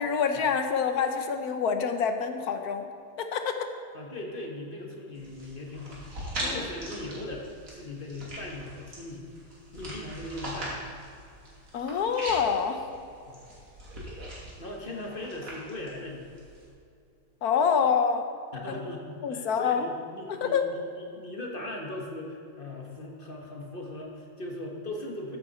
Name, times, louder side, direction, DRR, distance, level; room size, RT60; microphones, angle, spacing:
voice 1, 0.0-2.8 3.2-3.7 6.4-6.6 11.7-12.8 17.4-18.3 18.7-18.8 19.2-19.9 20.3-20.6, left 6 dB, 65° left, 7 dB, 1.3 m, -26 dB
voice 2, 3.9-9.3 9.7-10.8 13.3-13.4 14.6-16.2 18.5-25.4, left 1 dB, 35° left, 0 dB, 1.7 m, -39 dB
sound 1, 5.1-16.6, right 1 dB, 50° right, 3.2 m, -41 dB
14.5 x 8.9 x 4.3 m, 2.5 s
omnidirectional pair, 1.8 m